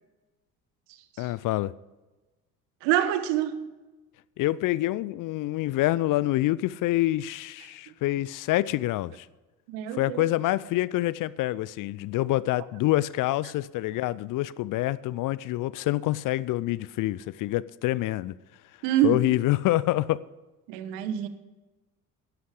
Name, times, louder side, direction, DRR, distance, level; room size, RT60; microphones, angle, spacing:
voice 1, 1.2-1.7 4.4-9.3 9.9-18.3 19.0-20.2, left 16 dB, 45° left, 0.5 m, -26 dB
voice 2, 2.8-3.6 9.7-10.2 18.8-19.2 20.7-21.3, right 12 dB, 65° right, 1.3 m, -26 dB
11.5 x 11.0 x 5.0 m
hypercardioid pair, 60°, 45 cm